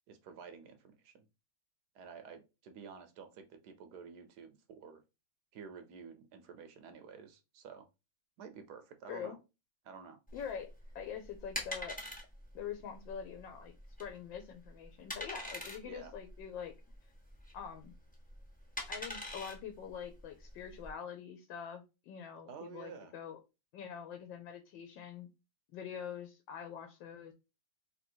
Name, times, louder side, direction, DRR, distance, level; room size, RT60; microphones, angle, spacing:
voice 1, 0.1-1.3 1.9-5.0 5.5-7.9 8.4-9.4 9.8-10.2 15.8-16.1 22.5-23.1, right 6 dB, 70° right, 8 dB, 1.0 m, -51 dB
voice 2, 10.3-12.0 12.5-13.7 14.0-16.7 17.5-17.9 18.9-23.4 23.7-25.3 25.7-27.3, left 7 dB, 75° left, 5 dB, 1.3 m, -44 dB
sound 1, 10.3-20.9, left 1 dB, 10° left, 0.4 m, -45 dB
3.2 x 2.7 x 4.4 m, 0.27 s
omnidirectional pair, 2.1 m